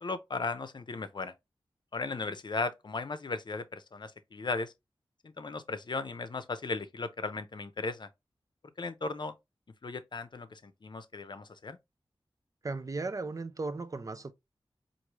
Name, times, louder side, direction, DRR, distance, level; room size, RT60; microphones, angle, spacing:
voice 1, 0.0-1.3 1.9-4.7 5.4-8.1 8.8-9.3 9.8-11.8, left 3 dB, 55° left, 0.6 m, -36 dB
voice 2, 12.6-14.3, right 3 dB, 40° right, 0.5 m, -36 dB
4.7 x 2.6 x 2.9 m
wide cardioid pair, 65°, 9 cm